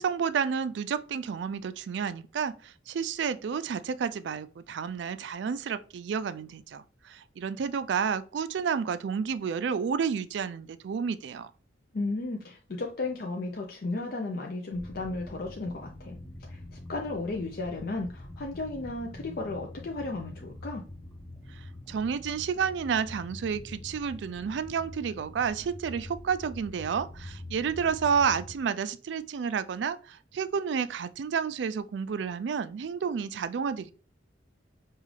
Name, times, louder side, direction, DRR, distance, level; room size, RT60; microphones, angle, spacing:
voice 1, 0.0-11.5 21.5-21.6 21.9-33.9, right 6 dB, 70° right, 0.3 m, -30 dB
voice 2, 11.9-16.2 16.5-20.8, left 2 dB, 55° left, 0.5 m, -34 dB
sound 1, 14.7-28.6, left 1 dB, 15° left, 0.6 m, -45 dB
5.4 x 2.4 x 3.3 m
head